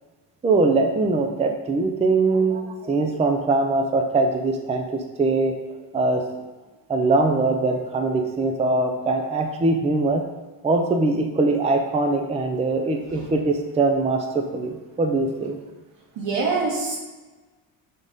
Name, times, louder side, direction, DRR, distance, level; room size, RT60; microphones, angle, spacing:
voice 1, 0.4-5.6 5.9-6.2 6.9-10.2 10.6-15.6, right 3 dB, 15° right, 4 dB, 0.5 m, -22 dB
voice 2, 16.2-17.0, right 4 dB, 85° right, -2 dB, 2.0 m, -25 dB
6.1 x 3.8 x 5.2 m, 1.2 s
cardioid pair, 145°, 45 cm